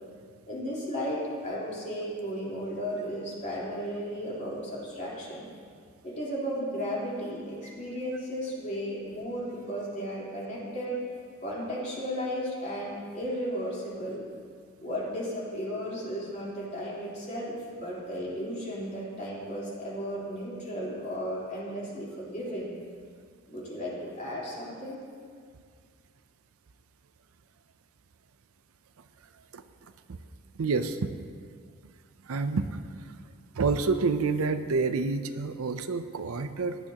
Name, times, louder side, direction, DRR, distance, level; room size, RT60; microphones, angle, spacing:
voice 1, 0.5-5.5 6.0-11.0 11.4-14.2 14.8-22.8 23.5-25.0, equal, 35° left, -7 dB, 3.7 m, -34 dB
voice 2, 30.5-31.1 32.2-32.8 33.5-36.8, right 4 dB, 80° right, 10 dB, 0.6 m, -28 dB
17.5 x 11.5 x 2.9 m, 2.1 s
head